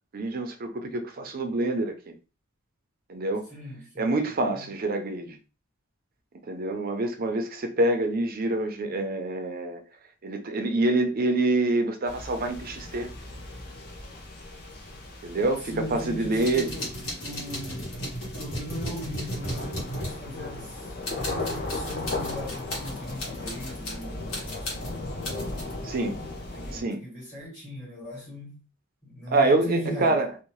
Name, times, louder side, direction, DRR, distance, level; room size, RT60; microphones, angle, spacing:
voice 1, 0.1-2.1 3.1-3.5 4.0-5.4 6.5-9.8 10.2-13.1 15.2-16.7 25.8-26.2 26.7-27.0 29.3-30.3, right 2 dB, 45° right, 0.5 m, -26 dB
voice 2, 3.5-4.1 4.4-4.7 15.4-16.9 17.2-18.0 18.3-24.9 26.5-28.6 29.0-30.2, equal, 25° left, 1.4 m, -38 dB
sound 1, 12.1-26.8, left 2 dB, 45° left, 0.7 m, -37 dB
sound 2, 16.3-20.7 21.0-24.0 24.3-25.7, left 1 dB, 75° left, 1.1 m, -36 dB
2.7 x 2.1 x 3.0 m
head